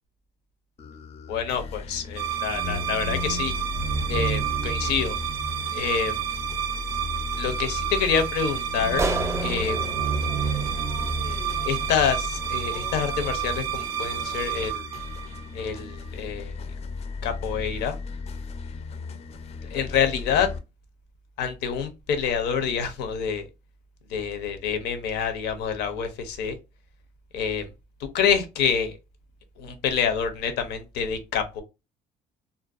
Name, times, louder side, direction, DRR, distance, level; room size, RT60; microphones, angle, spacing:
sound 1, 0.8-20.6, left 4 dB, 40° left, 0.4 m, -36 dB
voice 1, 1.3-3.5 4.1-5.2 5.7-6.3 7.4-9.1 9.4-10.0 11.6-14.8 15.5-16.5 17.2-18.0 19.7-20.5 21.4-23.4 24.1-26.6 27.3-27.6 28.0-29.0 29.6-31.6, left 7 dB, 85° left, 0.6 m, -27 dB
sound 2, 2.2-15.8, right 8 dB, 70° right, 0.4 m, -29 dB
sound 3, 9.0-11.6, right 3 dB, 15° right, 0.5 m, -31 dB
2.5 x 2.2 x 2.4 m
cardioid pair, 110°, 17 cm